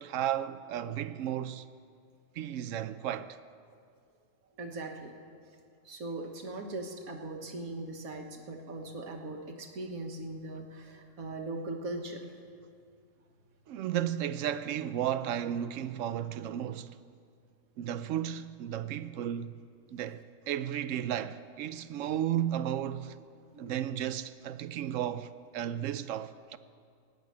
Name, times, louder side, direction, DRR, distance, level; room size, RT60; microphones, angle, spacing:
voice 1, 0.0-1.6 2.4-3.4 13.7-16.9 17.8-19.6 19.9-23.2 23.6-26.6, right 10 dB, 70° right, 0.9 m, -34 dB
voice 2, 4.6-5.1 5.8-12.2 23.5-23.7, right 2 dB, 90° right, 1.7 m, -40 dB
17.0 x 6.7 x 9.4 m
omnidirectional pair, 1.4 m